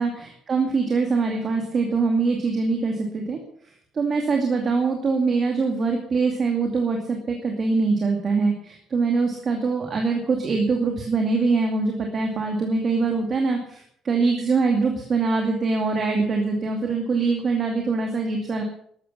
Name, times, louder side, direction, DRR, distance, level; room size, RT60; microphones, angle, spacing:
voice 1, 0.0-3.4 3.9-18.6, right 4 dB, 30° right, 3 dB, 2.4 m, -23 dB
13.5 x 12.0 x 7.1 m, 0.64 s
cardioid pair, 155°, 0 cm